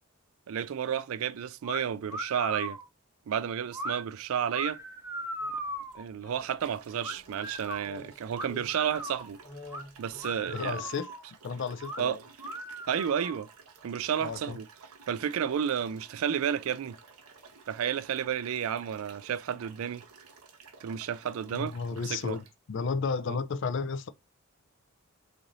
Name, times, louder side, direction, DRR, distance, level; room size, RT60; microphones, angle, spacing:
voice 1, 0.5-2.8 3.3-4.8 5.9-9.4 10.0-10.8 12.0-12.2 12.9-13.5 13.8-14.7 15.1-17.0 17.7-20.0 20.8-21.7 22.0-22.4 23.3-23.4, right 8 dB, 70° right, 0.3 m, -31 dB
sound 1, 1.6-1.8 2.1-2.9 3.7-4.0 4.5-6.0 7.0-7.8 8.3-9.3 9.7-9.8 10.2-11.2 11.8-12.0 12.4-13.5, right 1 dB, 10° right, 0.5 m, -38 dB
sound 2, 5.4-10.9, left 2 dB, 10° left, 0.9 m, -51 dB
sound 3, 5.8-5.9 6.6-22.5, right 5 dB, 85° right, 0.7 m, -54 dB
voice 2, 10.5-11.1 11.4-12.2 14.2-14.6 21.5-24.1, left 5 dB, 55° left, 0.4 m, -33 dB
3.1 x 2.6 x 3.9 m
head